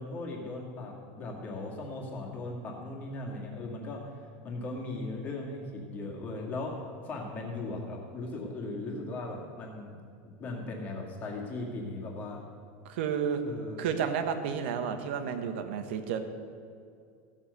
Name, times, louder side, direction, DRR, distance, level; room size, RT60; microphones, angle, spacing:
voice 1, 0.0-9.9 10.4-12.4 13.4-13.8, left 2 dB, 25° left, -1 dB, 2.1 m, -38 dB
voice 2, 12.8-13.4 13.8-16.2, right 7 dB, 70° right, 7 dB, 1.3 m, -31 dB
15.0 x 7.3 x 6.9 m, 2.3 s
supercardioid pair, 170°, 6 cm